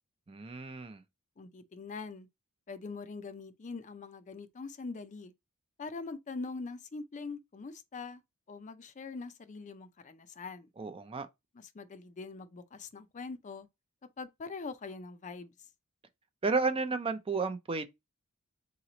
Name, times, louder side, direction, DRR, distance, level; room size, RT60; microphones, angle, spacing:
voice 1, 0.3-1.0 10.8-11.3 16.4-17.9, right 4 dB, 25° right, 0.4 m, -32 dB
voice 2, 1.4-2.3 2.7-5.3 5.8-8.2 8.5-10.7 11.5-13.7 14.2-15.5, left 4 dB, 35° left, 0.4 m, -43 dB
4.0 x 3.0 x 3.8 m
head